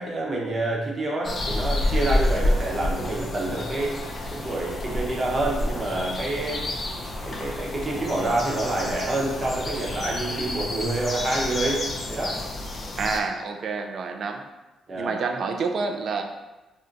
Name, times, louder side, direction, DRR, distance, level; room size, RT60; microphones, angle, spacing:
voice 1, 0.0-4.0 4.3-6.6 7.2-12.4 14.9-15.1, right 2 dB, 35° right, -3 dB, 0.8 m, -27 dB
sound 1, 1.2-13.2, left 1 dB, 40° left, 0.4 m, -29 dB
voice 2, 13.0-14.4 15.0-16.2, right 4 dB, 60° right, 4 dB, 0.3 m, -28 dB
2.5 x 2.1 x 3.8 m, 1.1 s
cardioid pair, 90°, 0 cm